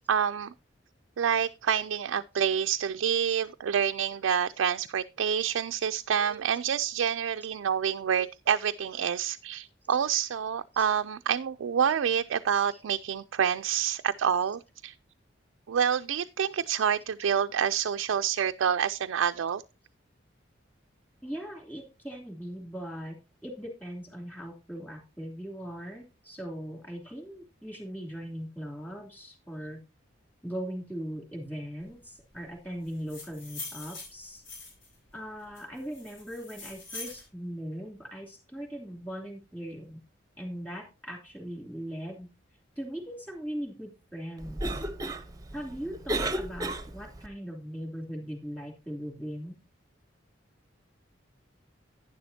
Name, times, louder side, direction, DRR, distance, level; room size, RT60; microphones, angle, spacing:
voice 1, 0.1-0.5 1.2-14.9 15.7-19.6, right 8 dB, 90° right, 0.4 m, -27 dB
voice 2, 21.2-23.2 23.4-29.8 30.4-34.4 35.1-40.0 40.4-42.3 42.8-44.8 45.5-49.6, equal, 10° left, 2.8 m, -39 dB
sound 1, 32.9-34.9 35.5-37.2, left 3 dB, 85° left, 7.0 m, -43 dB
Cough, 44.4-47.3, right 1 dB, 20° right, 0.7 m, -34 dB
11.0 x 10.0 x 2.7 m
head